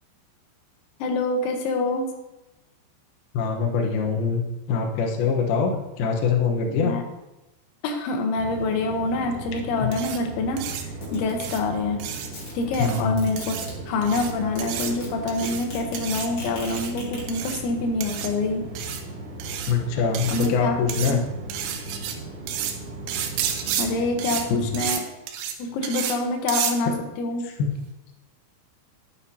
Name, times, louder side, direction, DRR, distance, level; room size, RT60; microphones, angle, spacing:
voice 1, 1.0-2.0 6.8-7.0 7.8-10.6 11.1-12.0 12.6-13.6 13.9-18.6 20.3-21.2 23.8-25.0 25.6-27.5, left 3 dB, 85° left, 3 dB, 3.5 m, -26 dB
voice 2, 3.3-4.4 4.7-6.9 9.8-9.9 12.8-13.1 19.7-21.2 24.5-24.6 27.6-27.7, left 5 dB, 70° left, 1 dB, 2.7 m, -23 dB
sound 1, 8.3-24.9, right 2 dB, 65° right, 1.5 m, -37 dB
sound 2, 9.9-10.2 10.6-10.8 11.4-11.6 12.0-12.3 12.7-13.0 13.4-13.7 14.0-14.3 14.6-14.9 15.3-15.6 15.9-16.3 16.6-16.9 17.3-17.6 18.0-18.3 18.8-19.0 19.4-19.7 20.1-20.5 20.9-21.1 21.5-22.1 22.5-22.7 23.1-23.9 24.2-24.4 24.7-25.0 25.3-25.5 25.8-26.2 26.5-26.7, right 9 dB, 90° right, 3.2 m, -30 dB
sound 3, 11.0-11.4 12.0-13.7 14.2-14.3 14.5-15.1 15.4-17.2, left 2 dB, 40° left, 2.6 m, -38 dB
11.5 x 9.1 x 2.8 m, 0.96 s
omnidirectional pair, 5.2 m